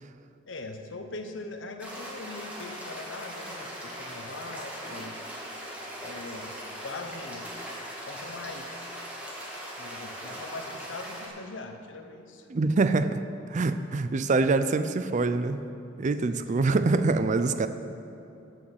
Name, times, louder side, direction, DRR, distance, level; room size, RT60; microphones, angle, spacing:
voice 1, 0.5-5.2 6.0-6.6 6.8-7.5 8.1-8.9 9.8-12.5 16.3-16.8, left 3 dB, 85° left, 6 dB, 0.9 m, -41 dB
sound 1, 1.8-11.3, equal, 10° right, 2.1 m, -40 dB
voice 2, 12.5-13.2 13.5-15.7 16.0-17.7, right 3 dB, 40° right, 11 dB, 0.4 m, -25 dB
9.9 x 6.2 x 7.9 m, 2.9 s
head